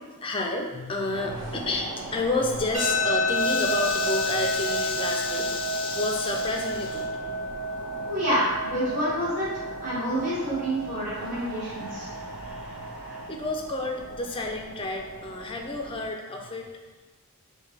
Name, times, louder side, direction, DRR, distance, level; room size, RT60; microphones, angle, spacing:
voice 1, 0.2-7.3 12.4-16.7, left 2 dB, 25° left, 2 dB, 0.4 m, -30 dB
sound 1, 1.1-16.1, right 2 dB, 80° right, 0.6 m, -41 dB
sound 2, 2.7-15.7, left 1 dB, 65° right, 1.5 m, -31 dB
voice 2, 8.1-12.1, equal, 35° right, -12 dB, 1.4 m, -28 dB
sound 3, 11.1-13.4, equal, 5° right, 1.0 m, -43 dB
5.1 x 2.2 x 3.3 m, 1.2 s
head